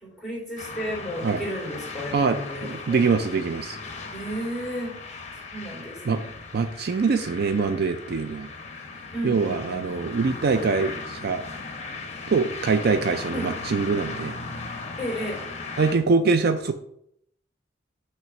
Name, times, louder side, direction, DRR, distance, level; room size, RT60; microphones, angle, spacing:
voice 1, 0.0-3.0 4.1-4.9 5.5-6.3 9.1-10.0 13.3-13.5 15.0-15.4, equal, ahead, -4 dB, 2.7 m, -33 dB
sound 1, 0.6-15.9, left 4 dB, 40° left, 0.8 m, -37 dB
voice 2, 2.1-3.8 6.1-6.2 6.5-8.5 9.2-11.4 12.3-14.4 15.8-16.7, right 4 dB, 60° right, 9 dB, 0.4 m, -24 dB
6.0 x 3.3 x 5.8 m, 0.71 s
head